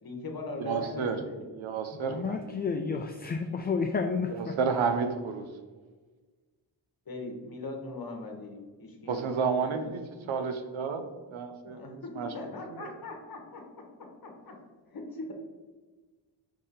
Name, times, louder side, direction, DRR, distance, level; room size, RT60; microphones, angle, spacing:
voice 1, 0.0-1.4 7.1-9.2 9.6-9.9 11.6-13.6 14.2-14.6 14.9-15.3, left 2 dB, 50° left, 2 dB, 1.1 m, -40 dB
voice 2, 0.6-1.2 1.5-2.5 4.3-5.4 9.1-10.0 10.3-11.0 11.3-12.3 12.8-12.9, right 5 dB, 80° right, 7 dB, 0.7 m, -31 dB
voice 3, 1.9-4.5, left 5 dB, 25° left, 5 dB, 0.3 m, -31 dB
5.2 x 2.6 x 3.7 m, 1.4 s
cardioid pair, 50°, 47 cm